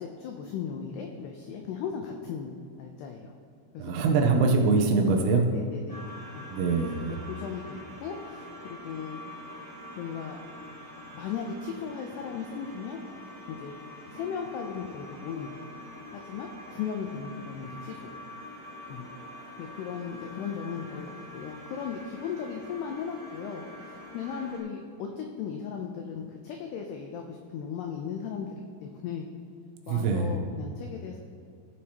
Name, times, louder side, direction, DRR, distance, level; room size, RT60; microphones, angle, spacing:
voice 1, 0.0-3.3 3.7-4.5 5.5-6.1 6.3-6.5 6.8-9.2 10.0-10.4 11.1-13.0 13.5-13.7 14.1-15.7 16.1-18.1 18.9-19.1 19.6-28.5 28.8-29.3 29.9-31.2, left 7 dB, 85° left, 2 dB, 2.3 m, -37 dB
voice 2, 3.8-5.4 6.5-7.2 29.9-30.4, right 4 dB, 85° right, 3 dB, 3.0 m, -23 dB
sound 1, 5.9-24.6, left 1 dB, 30° right, 1.1 m, -45 dB
16.0 x 7.3 x 2.9 m, 2.5 s
omnidirectional pair, 5.5 m